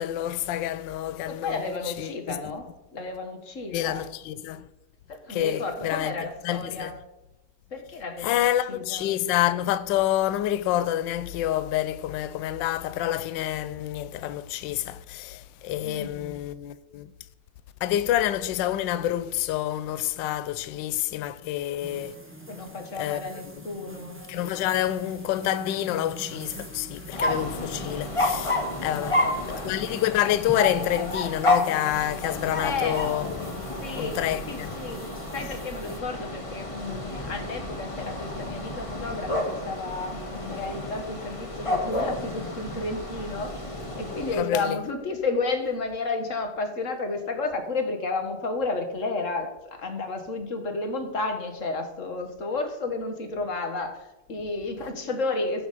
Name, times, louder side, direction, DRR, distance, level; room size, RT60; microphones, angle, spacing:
voice 1, 0.0-1.7 2.0-2.4 3.7-4.6 5.3-6.1 6.4-6.9 8.2-17.1 17.8-22.1 23.0-23.2 24.3-29.2 29.5-33.5 33.9-34.8 44.3-44.8, left 12 dB, 70° left, 1.2 m, -28 dB
voice 2, 1.3-2.6 2.9-4.0 5.1-7.0 7.7-9.2 15.8-16.4 22.5-24.2 28.9-29.7 32.6-33.1 33.8-35.1 35.3-43.7 44.0-55.7, left 3 dB, 40° left, 1.6 m, -32 dB
sound 1, 21.8-36.0, right 1 dB, 10° right, 0.8 m, -44 dB
sound 2, 27.1-44.3, left 1 dB, 15° left, 1.5 m, -31 dB
14.5 x 7.0 x 4.1 m
omnidirectional pair, 2.4 m